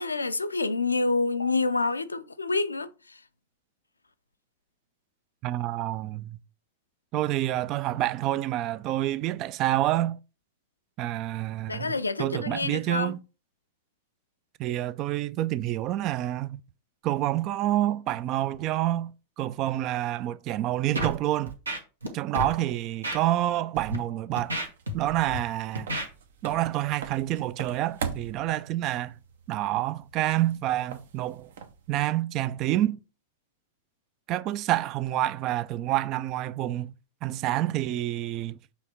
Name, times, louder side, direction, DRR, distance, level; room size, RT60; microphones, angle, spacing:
voice 1, 0.0-2.9 11.7-13.1, left 3 dB, 80° left, 0.5 m, -27 dB
voice 2, 5.4-6.4 7.1-10.2 11.0-13.2 14.6-16.6 17.0-19.1 19.4-21.6 22.1-24.6 24.9-25.9 26.4-29.1 29.5-31.5 31.9-33.0 34.3-36.9 37.2-38.6, right 14 dB, 40° right, 0.4 m, -28 dB
Scratching (performance technique), 20.9-21.2 21.5-22.1 22.3-22.5 23.0-23.2 23.7-24.0 24.4-25.4 25.8-26.1, right 1 dB, 80° right, 1.3 m, -31 dB
sound 1, 24.3-32.0, right 6 dB, 60° right, 0.8 m, -42 dB
7.1 x 3.4 x 4.2 m
figure-of-eight pair, 90°, 0 cm